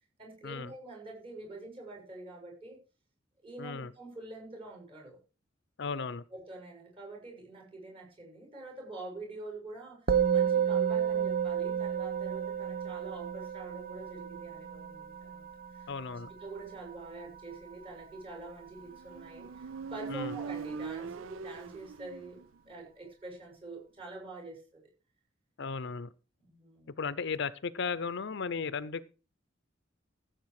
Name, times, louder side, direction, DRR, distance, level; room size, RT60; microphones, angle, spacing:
voice 1, 0.2-2.8 3.4-5.2 6.3-15.4 15.7-22.4 22.7-24.9 26.4-27.0, right 2 dB, 30° right, 6.6 m, -46 dB
voice 2, 3.6-3.9 5.8-6.2 15.9-16.3 20.1-20.3 25.6-26.1 27.0-29.0, left 5 dB, 65° left, 0.6 m, -35 dB
Musical instrument, 10.1-19.6, right 8 dB, 50° right, 0.8 m, -32 dB
Motorcycle, 18.9-22.6, right 6 dB, 80° right, 0.5 m, -41 dB
15.0 x 7.9 x 4.8 m
head